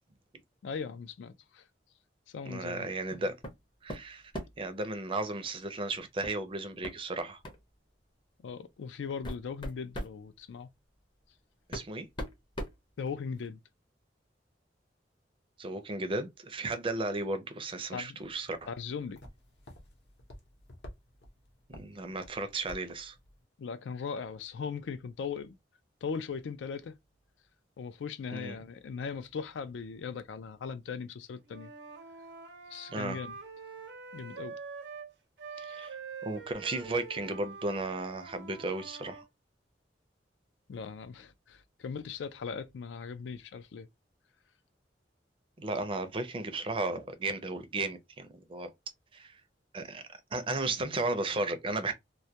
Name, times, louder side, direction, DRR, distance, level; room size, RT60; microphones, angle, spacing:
voice 1, 0.6-1.6 2.3-2.9 8.4-10.7 13.0-13.6 17.9-18.2 18.7-19.2 23.6-25.5 26.0-26.9 27.8-31.7 32.7-33.3 34.1-34.5 35.6-35.8 40.7-43.9, left 6 dB, 85° left, 0.4 m, -39 dB
voice 2, 2.5-3.4 3.8-4.3 4.6-7.4 11.7-12.1 15.6-18.7 21.7-23.2 28.3-28.6 32.9-33.2 35.6-36.0 36.2-39.2 45.6-48.7 49.1-49.4 49.7-50.0 50.3-51.9, right 2 dB, 30° right, 0.4 m, -34 dB
sound 1, 3.4-3.6 3.9-4.7 6.2-6.4 6.8-7.0 7.4-7.6 8.5-8.6 9.0-10.2 11.2-11.3 11.7-13.5, equal, 25° left, 0.6 m, -40 dB
sound 2, 18.2-23.4, left 1 dB, 65° left, 0.7 m, -52 dB
Wind instrument woodwind instrument, 31.5-35.1 35.4-39.3, right 5 dB, 75° right, 0.6 m, -45 dB
2.2 x 2.1 x 2.7 m
head